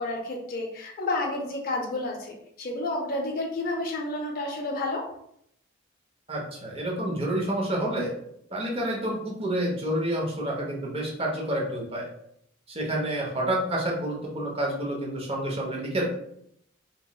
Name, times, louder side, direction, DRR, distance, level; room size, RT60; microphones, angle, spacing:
voice 1, 0.0-5.1, left 2 dB, 45° left, 1 dB, 0.5 m, -30 dB
voice 2, 6.3-8.1 8.5-12.1 12.7-16.0, right 1 dB, 30° right, -2 dB, 0.7 m, -29 dB
3.0 x 2.9 x 2.2 m, 0.72 s
head